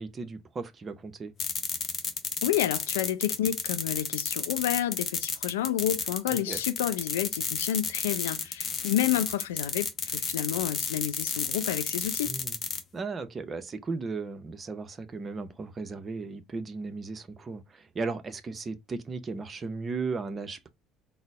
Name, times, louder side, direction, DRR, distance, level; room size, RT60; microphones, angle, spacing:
voice 1, 0.0-1.3 6.3-6.6 12.2-12.6 12.9-20.7, right 4 dB, 35° right, 0.6 m, -36 dB
sound 1, 1.4-12.8, left 5 dB, 40° left, 0.8 m, -32 dB
voice 2, 2.4-12.3, left 11 dB, 75° left, 0.3 m, -30 dB
3.9 x 2.0 x 3.4 m
figure-of-eight pair, 55°, 0 cm